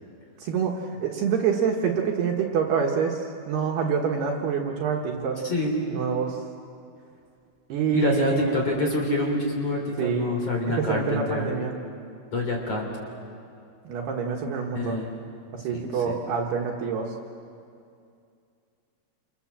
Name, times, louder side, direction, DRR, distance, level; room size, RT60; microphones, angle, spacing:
voice 1, 0.4-5.4 5.9-6.4 7.7-8.7 10.0-10.3 10.8-11.7 13.8-15.0 15.5-17.1, right 6 dB, 65° right, 0 dB, 3.1 m, -26 dB
voice 2, 5.4-5.8 7.9-11.5 12.3-12.8 14.7-15.1 15.7-16.2, left 1 dB, 35° left, 1 dB, 4.0 m, -26 dB
28.5 x 28.0 x 7.4 m, 2.5 s
omnidirectional pair, 5.7 m